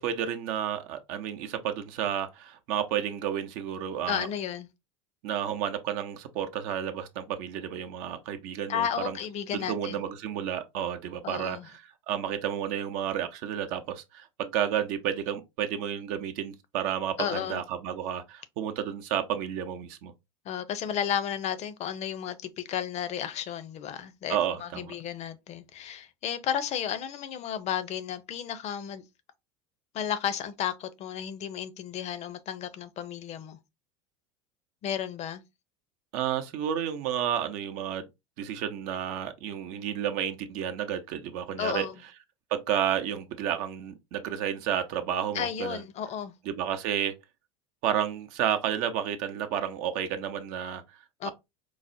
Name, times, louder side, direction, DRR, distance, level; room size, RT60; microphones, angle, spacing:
voice 1, 0.0-4.3 5.2-9.2 9.5-20.1 24.3-24.9 36.1-38.1 38.4-41.9 42.5-45.8 46.5-47.1 47.8-50.8 51.2-51.3, right 9 dB, 60° right, 0.7 m, -31 dB
voice 2, 4.1-4.7 8.7-10.0 11.2-11.7 17.2-17.6 20.5-29.0 29.9-33.6 34.8-35.4 41.6-41.9 45.3-46.3 51.2-51.3, left 9 dB, 45° left, 0.6 m, -33 dB
4.7 x 2.0 x 2.6 m
hypercardioid pair, 90°, 16 cm